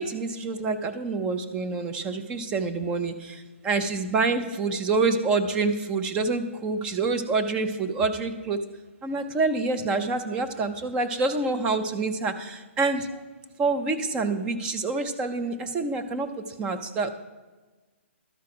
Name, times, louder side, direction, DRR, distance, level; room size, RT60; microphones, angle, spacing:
voice 1, 0.0-8.6 9.0-13.1 13.6-17.1, right 3 dB, 15° right, 7 dB, 0.4 m, -27 dB
12.0 x 4.7 x 6.0 m, 1.3 s
hypercardioid pair, 160°, 7 cm